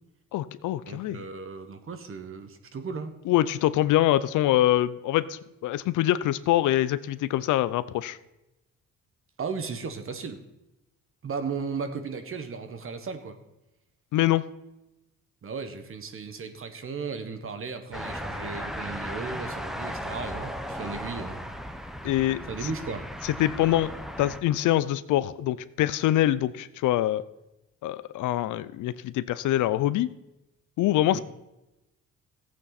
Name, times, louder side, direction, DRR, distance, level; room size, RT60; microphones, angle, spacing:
voice 1, 0.3-1.2 3.3-8.2 14.1-14.4 22.0-22.7 23.2-23.9 24.2-27.2 27.8-30.1 30.8-31.2, left 14 dB, 80° left, 16 dB, 0.6 m, -24 dB
voice 2, 0.9-3.1 9.4-10.4 11.2-13.4 15.4-21.4 22.5-23.1 31.1-31.2, right 5 dB, 45° right, 9 dB, 1.4 m, -35 dB
sound 1, 17.9-24.4, equal, ahead, 0.9 m, -36 dB
15.0 x 8.4 x 4.1 m, 0.94 s
cardioid pair, 90°, 30 cm